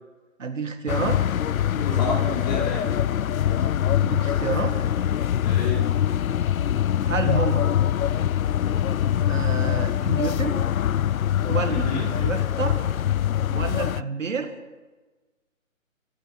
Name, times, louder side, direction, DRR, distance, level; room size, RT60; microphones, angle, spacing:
voice 1, 0.4-1.2 3.6-4.8 7.0-7.7 8.9-9.0 9.3-10.6 11.5-12.8 13.5-14.5, right 5 dB, 65° right, 7 dB, 2.0 m, -29 dB
sound 1, 0.9-14.0, left 10 dB, 85° left, 0.6 m, -23 dB
voice 2, 1.7-2.9 5.4-5.8 11.7-12.1, left 2 dB, 30° left, -3 dB, 4.4 m, -30 dB
25.0 x 9.3 x 5.3 m, 1.2 s
hypercardioid pair, 165°, 40 cm